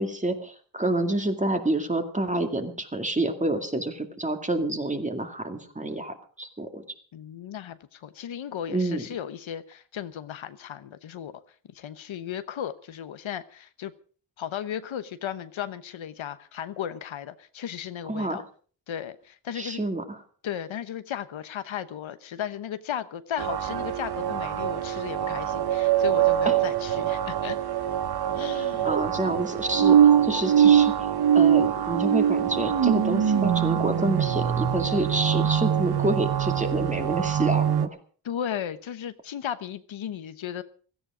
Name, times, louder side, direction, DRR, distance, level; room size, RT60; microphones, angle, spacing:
voice 1, 0.0-6.8 8.7-9.0 18.1-18.4 19.6-20.2 26.5-26.6 28.5-31.1 31.3-38.0, right 2 dB, 15° right, 6 dB, 2.2 m, -28 dB
voice 2, 7.1-11.3 11.7-13.9 14.4-18.4 18.9-19.8 20.4-27.6 28.3-28.9 38.2-40.6, left 9 dB, 85° left, 12 dB, 1.1 m, -35 dB
sound 1, 23.4-37.9, right 9 dB, 55° right, 1.0 m, -23 dB
16.5 x 14.5 x 5.0 m, 0.43 s
wide cardioid pair, 105°, 46 cm